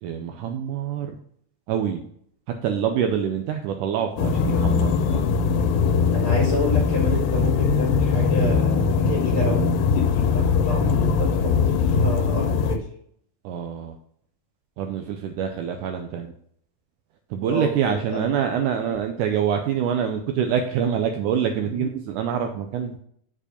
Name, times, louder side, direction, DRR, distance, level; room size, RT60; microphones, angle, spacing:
voice 1, 0.0-1.1 1.7-2.0 2.6-5.5 13.4-14.0 14.8-16.3 17.3-23.0, right 8 dB, 80° right, 5 dB, 1.9 m, -26 dB
sound 1, 4.2-12.8, left 5 dB, 90° left, 2.4 m, -21 dB
voice 2, 6.1-9.7 9.9-12.8 17.5-18.3 18.9-19.0 21.7-21.8, left 1 dB, 40° left, -2 dB, 2.4 m, -29 dB
7.3 x 4.6 x 5.0 m, 0.65 s
omnidirectional pair, 4.1 m